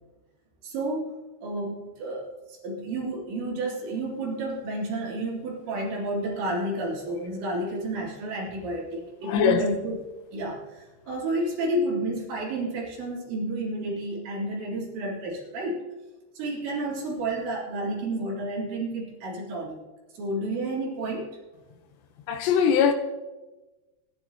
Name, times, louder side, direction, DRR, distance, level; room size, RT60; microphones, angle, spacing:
voice 1, 0.6-1.1 1.4-10.0 10.3-15.9 16.4-19.8 20.1-21.3, right 1 dB, 85° right, 5.9 m, -31 dB
voice 2, 9.2-9.7 22.3-22.9, left 7 dB, 80° left, 3.2 m, -21 dB
24.0 x 11.5 x 3.0 m
omnidirectional pair, 5.1 m